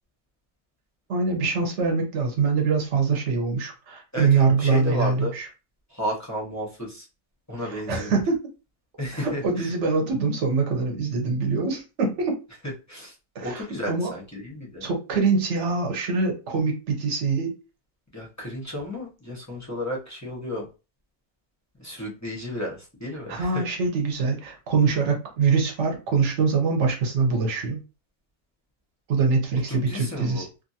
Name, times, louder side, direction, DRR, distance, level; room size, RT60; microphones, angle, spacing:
voice 1, 1.1-5.5 7.7-8.4 9.1-12.3 13.3-14.1 14.8-17.5 23.3-27.8 29.1-30.5, right 4 dB, 55° right, 3 dB, 1.0 m, -24 dB
voice 2, 4.1-5.3 5.9-7.1 7.5-8.1 9.0-9.7 12.6-13.1 13.4-14.9 18.1-20.7 21.8-23.6 29.7-30.5, equal, 15° left, -4 dB, 0.6 m, -33 dB
2.6 x 2.6 x 2.7 m, 0.31 s
omnidirectional pair, 1.6 m